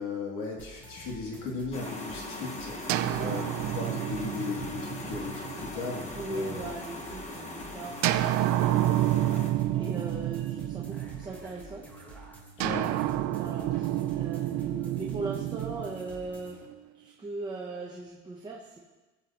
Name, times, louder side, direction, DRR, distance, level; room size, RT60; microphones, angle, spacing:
voice 1, 0.0-6.7 7.5-7.7 12.6-12.9, left 4 dB, 75° left, -1 dB, 2.9 m, -37 dB
sound 1, 0.6-16.6, right 1 dB, 5° left, 1.5 m, -50 dB
sound 2, 1.7-9.5, left 2 dB, 20° left, 1.2 m, -40 dB
sound 3, 2.9-6.7 8.0-11.6 12.6-16.7, right 14 dB, 65° right, 0.6 m, -29 dB
voice 2, 6.1-11.8 12.8-12.9 13.4-16.6 16.9-18.8, right 2 dB, 15° right, -3 dB, 0.8 m, -39 dB
20.5 x 7.8 x 3.0 m, 1.2 s
cardioid pair, 175°, 31 cm